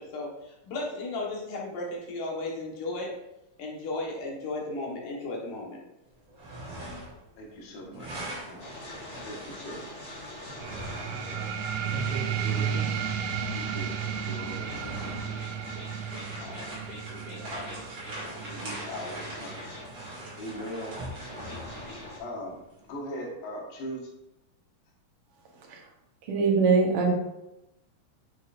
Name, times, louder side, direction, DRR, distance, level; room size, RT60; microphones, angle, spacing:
voice 1, 0.0-3.1 3.6-5.8, left 2 dB, 70° left, -2 dB, 2.9 m, -35 dB
sound 1, 6.2-7.3 7.5-12.9 13.8-13.9 14.4-22.2, right 1 dB, 45° right, 3.2 m, -41 dB
voice 2, 7.4-8.8 9.2-10.2 11.2-11.5 12.4-13.0 13.3-13.9 14.3-15.4 16.4-16.8 17.1-17.8 18.2-19.6 20.4-21.0 21.7-21.9 22.2-24.1, equal, 90° left, -2 dB, 3.4 m, -41 dB
sound 2, 8.6-22.2, left 1 dB, 30° left, 1.0 m, -44 dB
sound 3, 10.6-21.7, right 8 dB, 85° right, 2.4 m, -34 dB
voice 3, 26.3-27.2, right 4 dB, 60° right, 0 dB, 1.6 m, -22 dB
9.7 x 6.2 x 2.6 m, 0.92 s
omnidirectional pair, 4.0 m